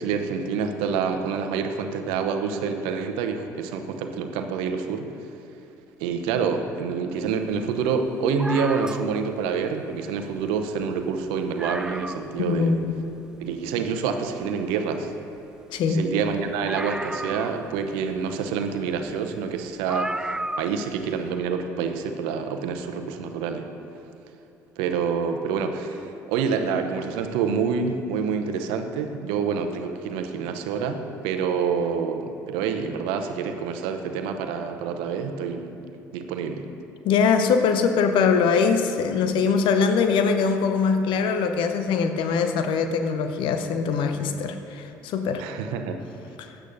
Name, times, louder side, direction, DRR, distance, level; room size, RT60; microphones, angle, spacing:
voice 1, 0.0-5.1 6.0-12.8 13.4-15.1 15.9-23.6 24.8-35.8 36.1-36.7 45.4-46.0, right 6 dB, 70° right, 7 dB, 0.8 m, -27 dB
sound 1, 8.4-9.3 10.4-10.5 10.8-10.9 11.3-11.4 11.6-12.4 12.9-13.0 16.7-17.9 19.1-19.2 19.9-20.8 21.1-21.2, right 1 dB, 5° right, 0.4 m, -33 dB
voice 2, 12.4-12.9 15.7-16.0 37.0-45.4 46.4-46.5, left 5 dB, 60° left, 7 dB, 0.9 m, -22 dB
15.5 x 10.0 x 2.7 m, 3.0 s
hypercardioid pair, 55°, 9 cm